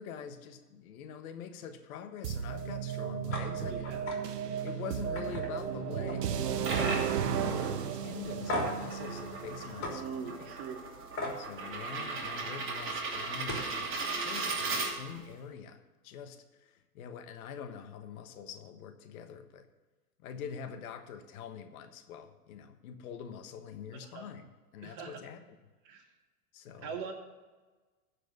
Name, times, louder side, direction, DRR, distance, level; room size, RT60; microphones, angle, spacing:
voice 1, 0.0-4.0 4.6-10.5 11.4-19.7 20.2-25.4 26.5-26.9, left 7 dB, 60° left, 8 dB, 1.4 m, -44 dB
sound 1, 2.2-10.1, right 8 dB, 80° right, 0.9 m, -35 dB
sound 2, 3.3-3.5 3.8-4.2 4.6-4.7 5.2-6.3 6.6-7.0 7.5-7.6 8.5-8.9 9.8-10.0 11.2-11.4 13.0-13.1 13.4-13.7, left 1 dB, 25° left, 3.6 m, -36 dB
voice 2, 3.6-4.0 9.6-10.8 14.0-14.3 24.0-24.3 24.8-25.2 25.8-26.0 26.8-27.1, right 6 dB, 45° right, 2 dB, 2.5 m, -42 dB
sound 3, 6.4-15.3, right 3 dB, 25° right, 2.7 m, -37 dB
14.5 x 5.0 x 8.2 m, 1.3 s
hypercardioid pair, 100°, 48 cm